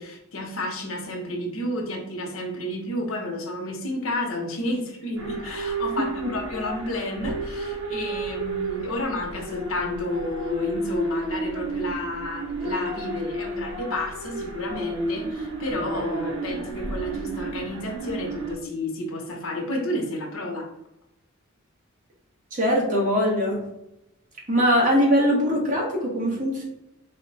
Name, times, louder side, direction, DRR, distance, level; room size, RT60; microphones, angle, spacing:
voice 1, 0.0-20.7, left 1 dB, 75° left, 2 dB, 0.8 m, -31 dB
sound 1, 5.2-18.6, right 1 dB, 70° right, 0.8 m, -32 dB
voice 2, 22.5-23.6 24.5-26.7, equal, 40° right, -2 dB, 1.2 m, -21 dB
4.1 x 2.2 x 3.9 m, 0.85 s
head